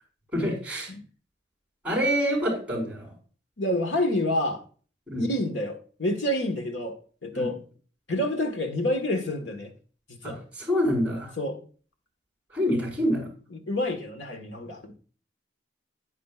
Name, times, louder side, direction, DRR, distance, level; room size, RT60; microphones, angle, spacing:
voice 1, 0.3-0.9 1.8-3.1 5.1-5.3 7.3-7.5 10.2-11.3 12.5-13.3, equal, 5° right, 5.4 m, -26 dB
voice 2, 3.6-4.6 5.2-7.0 7.2-7.6 8.1-9.7 10.1-10.4 11.4-11.6 13.5-14.9, left 1 dB, 85° left, 1.6 m, -28 dB
10.0 x 9.6 x 2.4 m
head